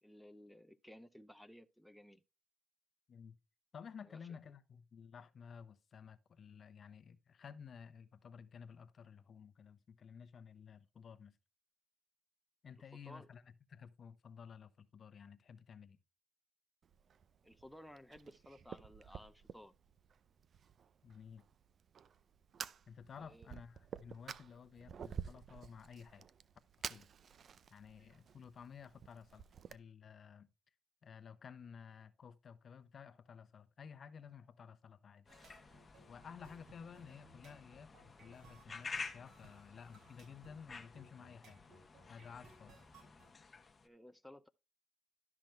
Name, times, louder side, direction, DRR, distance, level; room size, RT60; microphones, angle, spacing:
voice 1, 0.0-2.2 4.1-4.3 13.0-13.3 17.4-19.7 23.2-23.5 43.8-44.5, left 1 dB, ahead, 0.6 m, -57 dB
voice 2, 3.7-11.4 12.6-16.0 21.0-21.4 22.9-26.3 26.9-27.1 27.7-30.5 31.0-35.3 36.1-41.7 42.1-42.8, left 6 dB, 50° left, 0.9 m, -54 dB
Fire, 16.8-29.8, right 7 dB, 55° right, 0.5 m, -51 dB
sound 1, 35.3-43.9, left 4 dB, 30° left, 1.0 m, -51 dB
sound 2, 35.3-43.3, right 3 dB, 75° right, 5.6 m, -63 dB
12.0 x 6.1 x 3.4 m
cardioid pair, 90°, 0 cm